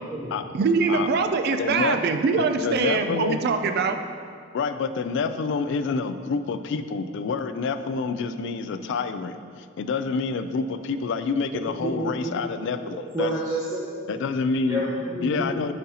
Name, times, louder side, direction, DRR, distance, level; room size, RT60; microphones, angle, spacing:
voice 1, 0.5-4.0, right 4 dB, 50° right, 7 dB, 0.3 m, -23 dB
voice 2, 1.6-2.0 2.4-3.4 4.5-13.3 14.1-14.8 15.2-15.7, left 4 dB, 60° left, 10 dB, 0.3 m, -27 dB
voice 3, 11.5-12.4 12.9-14.0 14.7-15.7, right 1 dB, 20° right, -8 dB, 0.8 m, -30 dB
9.9 x 4.0 x 2.8 m, 2.2 s
head